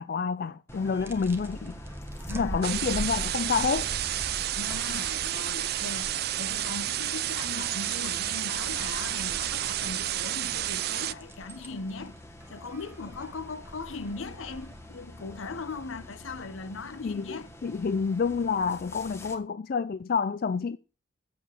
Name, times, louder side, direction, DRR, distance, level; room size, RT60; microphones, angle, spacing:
voice 1, 0.0-1.8 2.3-3.9 17.0-17.4 17.6-20.8, left 5 dB, 45° left, 0.3 m, -28 dB
sound 1, 0.7-19.4, left 1 dB, 15° left, 1.1 m, -47 dB
sound 2, 0.7-14.9, right 1 dB, 10° right, 0.8 m, -43 dB
voice 2, 2.2-2.7 4.5-12.2 12.5-17.5, left 3 dB, 80° left, 0.8 m, -39 dB
sound 3, 2.6-11.1, right 13 dB, 50° right, 0.3 m, -31 dB
7.8 x 6.9 x 4.7 m
head